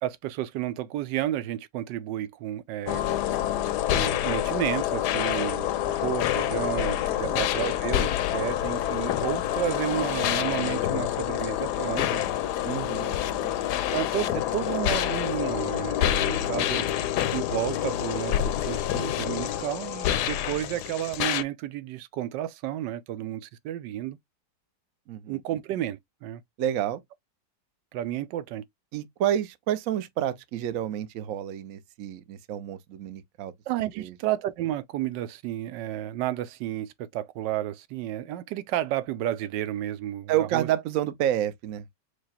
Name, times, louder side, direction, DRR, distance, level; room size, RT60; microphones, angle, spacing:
voice 1, 0.0-3.0 3.9-12.2 13.9-16.9 17.3-24.2 25.3-26.4 27.9-28.6 33.7-40.7, right 13 dB, 85° right, 1.2 m, -32 dB
sound 1, 2.9-21.4, left 12 dB, 75° left, 1.1 m, -27 dB
voice 2, 12.6-13.6 25.1-25.4 26.6-27.0 28.9-33.5 34.0-34.1 40.3-41.9, right 11 dB, 65° right, 0.9 m, -29 dB
4.8 x 2.2 x 4.2 m
omnidirectional pair, 1.9 m